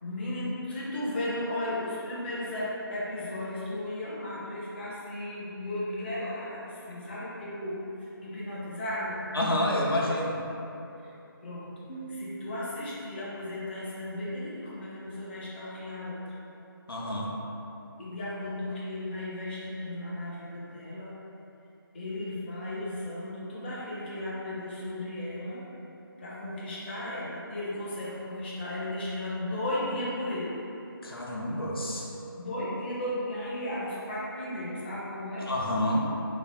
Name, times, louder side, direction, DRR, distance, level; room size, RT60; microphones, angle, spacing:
voice 1, 0.0-9.2 11.0-11.1 11.4-11.8 12.1-16.3 18.0-21.1 21.9-25.6 26.2-30.6 32.4-35.5, left 1 dB, 30° left, -8 dB, 0.6 m, -35 dB
voice 2, 9.3-10.4 11.9-12.2 16.9-17.3 31.0-32.0 35.5-36.1, left 1 dB, 75° left, -3 dB, 0.7 m, -28 dB
3.9 x 2.4 x 3.3 m, 2.9 s
figure-of-eight pair, 160°, 12 cm